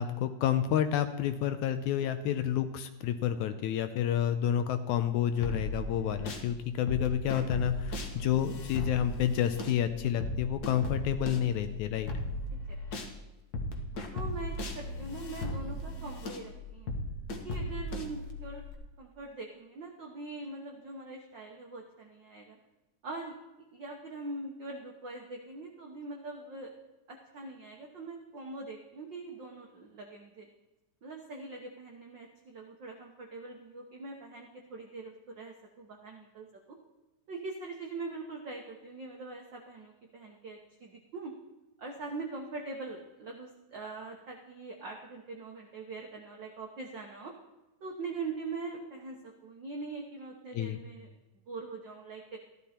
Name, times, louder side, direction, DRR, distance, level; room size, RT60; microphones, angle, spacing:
voice 1, 0.0-12.1 50.5-50.8, left 10 dB, 75° left, 10 dB, 1.9 m, -29 dB
sound 1, 5.4-6.5 6.9-13.1 13.5-18.7, left 1 dB, 60° left, 0.9 m, -37 dB
voice 2, 12.7-13.0 14.1-16.9 17.3-18.6 19.0-22.6 23.0-23.3 23.7-26.7 27.1-30.5 31.0-36.8 37.3-41.3 41.8-47.3 47.8-51.1 51.5-52.4, right 3 dB, 75° right, 2 dB, 1.0 m, -42 dB
14.5 x 12.0 x 4.3 m, 1.0 s
omnidirectional pair, 3.8 m